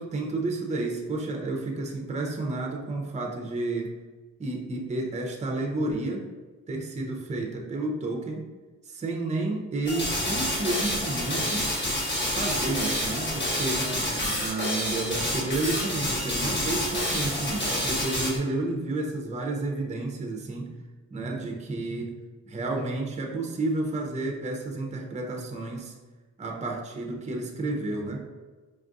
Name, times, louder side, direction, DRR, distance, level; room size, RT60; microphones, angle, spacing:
voice 1, 0.0-3.9 4.4-6.3 6.7-8.4 8.8-11.7 12.3-20.7 21.1-22.1 22.5-25.9 26.4-28.2, right 2 dB, 25° right, 1 dB, 0.6 m, -31 dB
sound 1, 9.9-18.4, left 1 dB, 40° left, 1.2 m, -28 dB
4.6 x 2.4 x 2.5 m, 1.3 s
cardioid pair, 90°, 30 cm